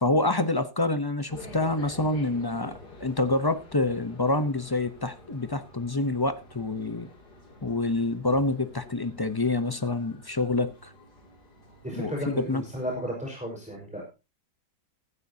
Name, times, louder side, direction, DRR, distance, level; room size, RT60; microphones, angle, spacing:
voice 1, 0.0-7.1 7.6-10.9 12.0-12.6, left 2 dB, 25° left, 0.5 m, -27 dB
sound 1, 1.3-13.0, left 2 dB, 75° left, 3.4 m, -49 dB
voice 2, 11.8-14.1, equal, 5° right, 4.9 m, -34 dB
15.5 x 12.5 x 2.8 m
omnidirectional pair, 1.8 m